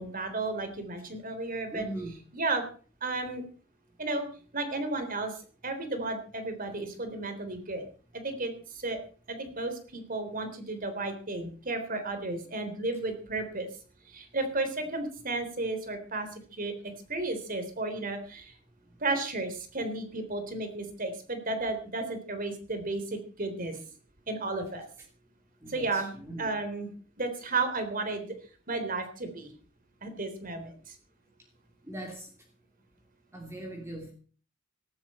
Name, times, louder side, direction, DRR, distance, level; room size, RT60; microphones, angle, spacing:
voice 1, 0.0-1.8 2.3-2.6 3.0-3.4 4.0-4.3 4.5-5.3 5.6-7.9 8.1-9.0 9.3-13.7 14.1-16.7 17.1-18.5 19.0-23.7 24.3-24.8 25.7-26.1 26.4-26.9 27.2-28.3 28.7-29.5 30.0-31.0, right 2 dB, 45° right, 8 dB, 3.6 m, -33 dB
voice 2, 1.7-2.1 25.6-26.5 31.8-32.3 33.3-34.1, right 1 dB, 15° right, 0 dB, 3.0 m, -40 dB
18.0 x 14.5 x 4.3 m, 0.40 s
head